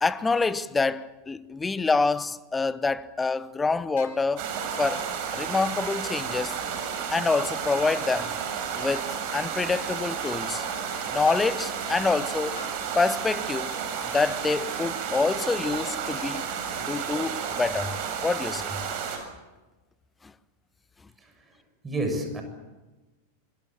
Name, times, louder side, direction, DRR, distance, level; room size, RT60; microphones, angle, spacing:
voice 1, 0.0-4.5 4.8-6.6 7.1-8.3 8.7-10.7 11.1-12.6 13.0-13.8 14.1-16.5 16.9-18.0 18.2-18.8, left 4 dB, 10° left, 1.1 m, -26 dB
sound 1, 4.0-4.2 8.9-9.0 10.2-10.4 11.3-11.5 12.6-12.8 14.1-14.4 15.1-15.3, left 6 dB, 60° left, 4.3 m, -45 dB
sound 2, 4.4-19.2, right 7 dB, 45° right, 7.0 m, -32 dB
voice 2, 21.2-21.5 21.8-22.4, right 1 dB, 15° right, 7.1 m, -30 dB
26.5 x 23.5 x 7.5 m
figure-of-eight pair, 90°, 0 cm